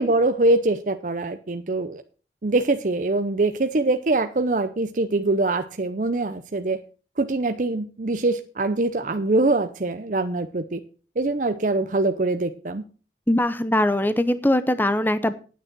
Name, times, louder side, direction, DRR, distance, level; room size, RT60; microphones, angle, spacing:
voice 1, 0.0-2.0 2.4-6.8 7.2-10.8 11.2-12.8, right 2 dB, 45° right, 8 dB, 0.6 m, -23 dB
voice 2, 13.3-15.3, left 1 dB, 10° left, 12 dB, 0.6 m, -21 dB
9.2 x 9.1 x 6.0 m, 0.37 s
head